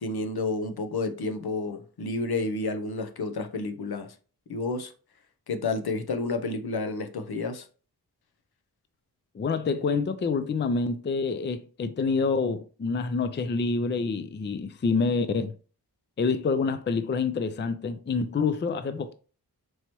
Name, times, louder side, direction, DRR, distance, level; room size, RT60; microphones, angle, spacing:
voice 1, 0.0-4.1 4.5-4.9 5.5-7.7, left 3 dB, 70° left, 0.7 m, -30 dB
voice 2, 9.3-15.5 16.2-19.1, left 4 dB, 30° left, 0.4 m, -27 dB
4.6 x 3.0 x 2.9 m
cardioid pair, 50°, 39 cm